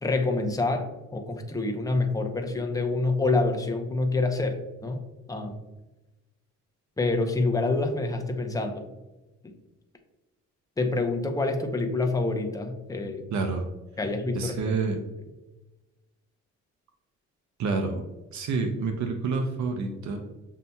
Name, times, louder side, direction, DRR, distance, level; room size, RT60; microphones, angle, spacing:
voice 1, 0.0-5.0 5.3-5.6 7.0-8.8 9.4-9.5 10.8-13.3 14.0-14.7, left 3 dB, 10° left, 4 dB, 0.6 m, -27 dB
voice 2, 13.3-13.6 14.3-15.0 17.6-18.0 18.3-20.2, right 4 dB, 70° right, 5 dB, 0.6 m, -28 dB
6.8 x 2.8 x 2.2 m, 1.1 s
cardioid pair, 90°, 30 cm